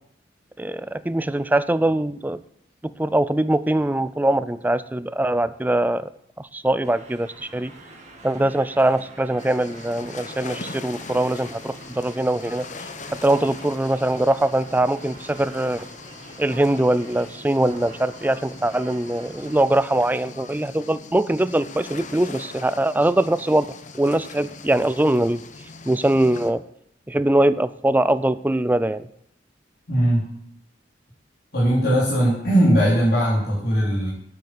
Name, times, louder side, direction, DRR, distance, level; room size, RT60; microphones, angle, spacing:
voice 1, 0.6-2.4 2.8-6.1 6.4-7.7 8.2-12.7 13.1-15.9 16.4-25.4 25.9-26.6 27.1-29.1, right 1 dB, 10° right, 15 dB, 0.4 m, -22 dB
sound 1, 6.8-19.6, right 2 dB, 40° right, 2.5 m, -45 dB
sound 2, 9.4-26.5, left 4 dB, 40° left, 0.9 m, -41 dB
voice 2, 29.9-30.3 31.5-34.1, equal, 60° left, -9 dB, 3.9 m, -19 dB
9.6 x 8.5 x 8.2 m, 0.74 s
head